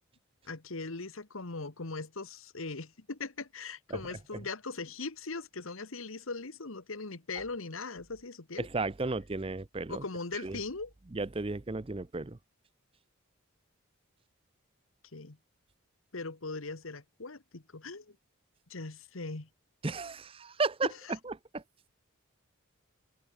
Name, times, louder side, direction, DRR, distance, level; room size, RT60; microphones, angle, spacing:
voice 1, 0.4-8.7 9.9-10.9 15.1-15.4 16.1-18.1 18.7-19.5, left 3 dB, 75° left, 1.6 m, -40 dB
voice 2, 8.6-10.0 10.4-10.6 11.1-12.4 19.8-21.6, right 3 dB, 25° right, 0.6 m, -34 dB
head